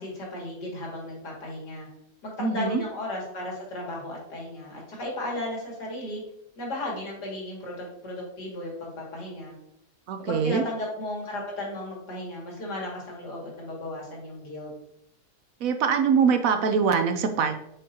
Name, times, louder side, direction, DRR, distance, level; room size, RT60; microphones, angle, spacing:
voice 1, 0.0-1.9 2.2-6.2 6.6-9.5 10.3-14.7, left 1 dB, 85° left, -3 dB, 2.8 m, -35 dB
voice 2, 2.4-2.8 10.1-10.6 15.6-17.6, right 6 dB, 65° right, 7 dB, 0.9 m, -23 dB
8.4 x 5.3 x 2.8 m, 0.77 s
omnidirectional pair, 1.7 m